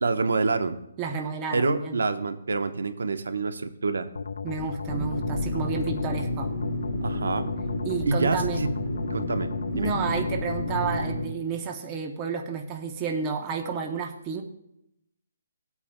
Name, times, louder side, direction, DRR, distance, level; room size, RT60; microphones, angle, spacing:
voice 1, 0.0-0.8 1.5-4.1 7.0-7.5 8.1-8.7 9.1-9.9, right 4 dB, 80° right, 9 dB, 0.9 m, -27 dB
voice 2, 1.0-2.0 4.4-6.5 7.8-8.6 9.7-14.4, right 5 dB, 15° right, 3 dB, 0.6 m, -31 dB
sound 1, 4.1-11.0, left 5 dB, 80° left, 0.5 m, -35 dB
sound 2, 4.9-11.3, left 1 dB, 15° left, 1.1 m, -31 dB
17.5 x 8.4 x 2.2 m, 0.80 s
hypercardioid pair, 175°, 0 cm